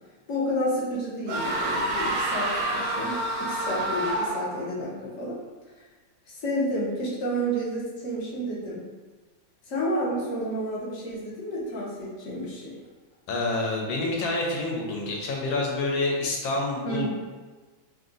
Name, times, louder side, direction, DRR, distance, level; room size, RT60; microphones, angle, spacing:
voice 1, 0.3-5.4 6.3-8.8 9.7-12.7 16.8-17.1, equal, 50° left, -6 dB, 1.0 m, -30 dB
sound 1, 1.3-4.6, right 1 dB, 65° right, 0.9 m, -28 dB
voice 2, 13.3-17.1, left 2 dB, 75° left, -1 dB, 1.5 m, -27 dB
3.4 x 2.6 x 3.8 m, 1.3 s
omnidirectional pair, 2.2 m